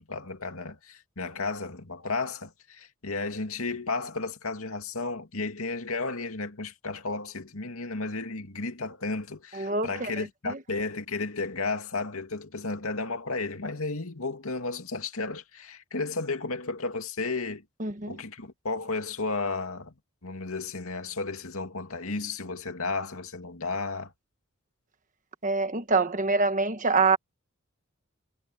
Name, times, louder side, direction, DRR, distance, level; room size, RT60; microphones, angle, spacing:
voice 1, 0.0-17.6 18.1-19.9 20.2-24.1, left 3 dB, 75° left, 2.4 m, -33 dB
voice 2, 9.5-10.1 10.4-10.6 17.8-18.2 25.4-27.2, right 4 dB, 35° right, 1.3 m, -25 dB
head